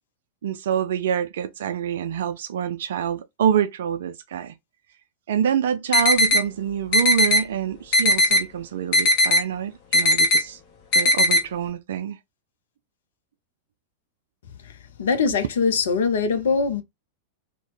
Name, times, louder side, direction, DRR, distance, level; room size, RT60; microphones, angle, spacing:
voice 1, 0.4-4.5 5.3-10.6 10.9-12.2 15.3-15.4, right 8 dB, 60° right, 0.3 m, -26 dB
sound 1, 5.9-6.4 6.9-7.4 7.9-8.4 8.9-9.4 9.9-10.4 10.9-11.4, left 1 dB, 45° left, 0.9 m, -17 dB
voice 2, 15.0-16.8, left 5 dB, 60° left, 0.5 m, -22 dB
2.8 x 2.0 x 3.1 m
figure-of-eight pair, 90°, 0 cm